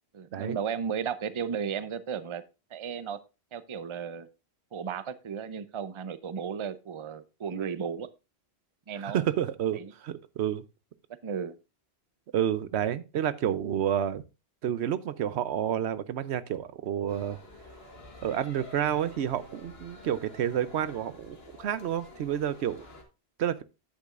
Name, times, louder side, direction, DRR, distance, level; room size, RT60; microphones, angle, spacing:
voice 1, 0.1-2.4 2.7-3.2 3.5-4.3 4.7-8.1 8.9-9.2 9.7-9.9 11.2-11.6, right 7 dB, 35° right, 0.5 m, -34 dB
voice 2, 9.0-10.6 12.3-14.2 14.6-17.4 18.2-22.9 23.4-23.6, right 10 dB, 85° right, 0.9 m, -29 dB
sound 1, 17.1-23.0, left 2 dB, 70° left, 1.8 m, -50 dB
10.0 x 8.4 x 2.4 m
omnidirectional pair, 1.1 m